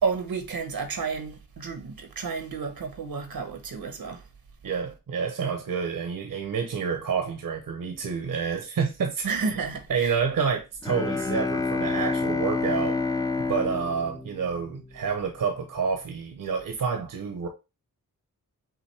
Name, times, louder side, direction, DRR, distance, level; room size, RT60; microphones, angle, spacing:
voice 1, 0.0-4.2 9.2-10.2, right 5 dB, 85° right, 1.1 m, -31 dB
voice 2, 4.6-9.3 9.9-13.0 13.5-17.5, right 6 dB, 65° right, 0.8 m, -28 dB
Bowed string instrument, 10.8-15.1, left 3 dB, 10° left, 0.4 m, -28 dB
5.8 x 2.6 x 3.3 m
wide cardioid pair, 75°, 35 cm